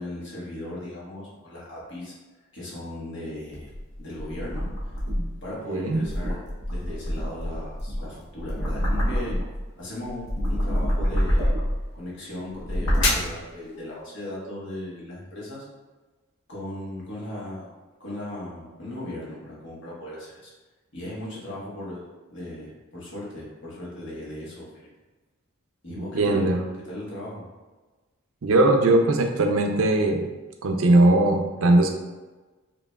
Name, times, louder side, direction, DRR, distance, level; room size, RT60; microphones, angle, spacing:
voice 1, 0.0-2.1 2.5-3.7 4.0-4.9 5.4-6.4 6.7-9.3 9.8-11.5 11.9-15.6 16.5-17.7 18.0-20.5 20.9-24.9 25.8-27.4, left 1 dB, 60° left, -6 dB, 1.4 m, -37 dB
sound 1, 3.5-5.4 5.9-9.6 10.0-11.9 12.5-13.3, equal, 75° left, 0.9 m, -26 dB
voice 2, 5.7-6.0 26.1-26.6 28.4-30.2 30.6-31.9, right 2 dB, 85° right, 3 dB, 0.5 m, -19 dB
5.0 x 2.9 x 2.3 m, 1.2 s
head